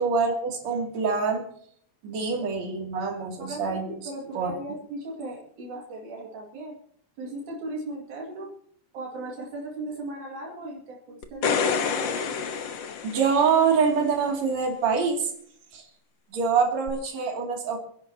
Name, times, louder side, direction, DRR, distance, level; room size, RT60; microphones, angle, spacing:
voice 1, 0.0-1.5 2.0-3.9 4.3-4.6 13.0-15.3 15.7-15.8 16.3-17.8, right 5 dB, 60° right, 1 dB, 3.9 m, -25 dB
voice 2, 3.4-6.8 7.2-8.5 8.9-11.8, right 2 dB, 75° right, -1 dB, 3.6 m, -37 dB
sound 1, 11.2-13.8 16.9-17.0, left 6 dB, 55° left, 1.4 m, -28 dB
29.5 x 11.0 x 2.9 m, 0.63 s
omnidirectional pair, 3.6 m